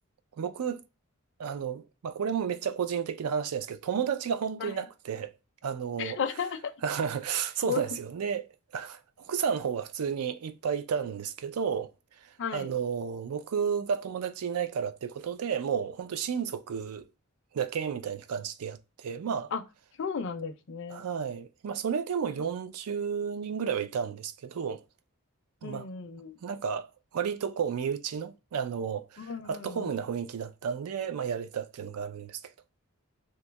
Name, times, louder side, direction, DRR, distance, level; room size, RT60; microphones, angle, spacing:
voice 1, 0.4-0.8 1.4-5.3 5.6-6.2 6.8-8.5 8.7-11.9 12.2-17.1 17.5-19.5 20.9-24.8 25.6-25.9 26.4-26.9 27.1-32.4, right 7 dB, 80° right, 0.4 m, -32 dB
voice 2, 6.0-6.7 7.6-7.8 12.4-12.7 19.5-19.6 20.0-21.0 25.6-26.4 29.2-30.0, left 6 dB, 55° left, 0.4 m, -34 dB
2.7 x 2.3 x 3.9 m
head